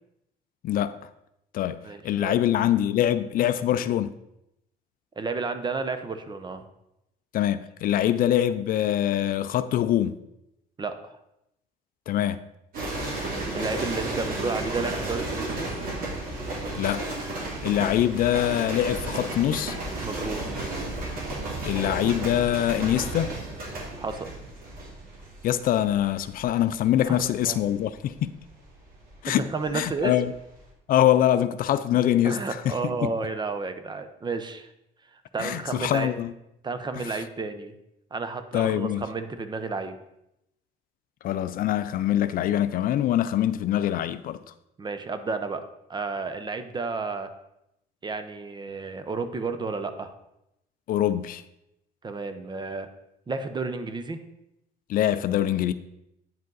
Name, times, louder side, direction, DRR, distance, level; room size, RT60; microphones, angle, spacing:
voice 1, 0.6-1.0 1.5-4.1 7.3-10.1 12.1-12.4 16.7-17.2 17.6-19.8 21.6-23.4 25.4-28.3 29.2-29.5 29.7-30.3 30.9-32.4 32.7-32.8 33.0-33.1 35.4-36.3 37.0-37.2 38.5-39.0 41.2-44.4 50.9-51.4 54.9-55.7, left 11 dB, 60° left, 0.4 m, -24 dB
voice 2, 1.8-2.4 5.2-6.6 10.8-11.2 13.5-15.7 20.0-20.4 24.0-24.3 27.0-27.6 29.3-30.1 32.2-34.7 35.3-36.1 36.6-37.7 38.1-40.0 44.8-45.6 45.9-47.3 48.0-50.1 52.0-52.9 53.3-54.2, right 4 dB, 25° right, 0.7 m, -31 dB
sound 1, 12.7-30.0 30.3-30.7, right 2 dB, 60° right, 2.5 m, -33 dB
9.2 x 5.1 x 3.9 m
cardioid pair, 110°, 17 cm